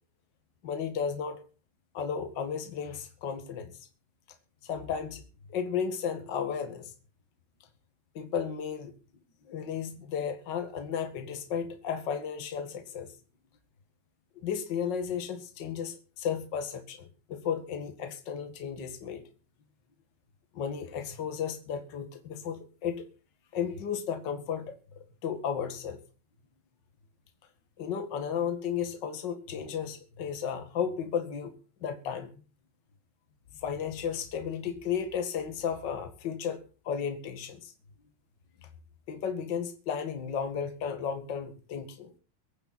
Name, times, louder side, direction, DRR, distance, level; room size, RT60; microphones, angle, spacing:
voice 1, 0.6-1.4 1.9-3.7 4.6-5.2 5.5-6.9 8.1-9.0 9.5-13.1 14.4-19.2 20.5-23.1 23.5-24.7 25.2-26.0 27.8-31.6 31.8-32.3 33.6-37.7 39.1-42.1, left 7 dB, 40° left, 7 dB, 2.1 m, -34 dB
23.5 x 9.0 x 4.4 m, 0.37 s
omnidirectional pair, 3.8 m